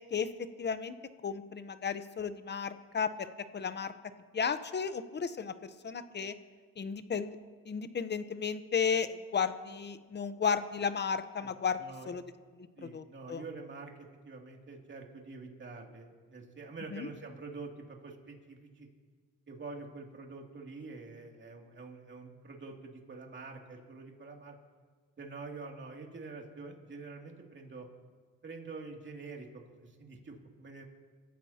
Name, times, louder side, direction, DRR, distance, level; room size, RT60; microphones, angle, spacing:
voice 1, 0.6-0.9 1.2-3.3 3.5-3.9 4.3-5.5 5.8-6.3 6.8-7.4 7.7-11.8 12.1-12.2 12.8-13.4 16.9-17.1, left 6 dB, 35° left, 11 dB, 0.9 m, -33 dB
voice 2, 11.4-12.1 12.8-18.9 19.5-24.6 25.2-27.9 28.4-29.5 29.8-30.8, right 3 dB, 40° right, 1 dB, 2.7 m, -46 dB
25.5 x 14.5 x 2.9 m, 1.5 s
cardioid pair, 90°, 30 cm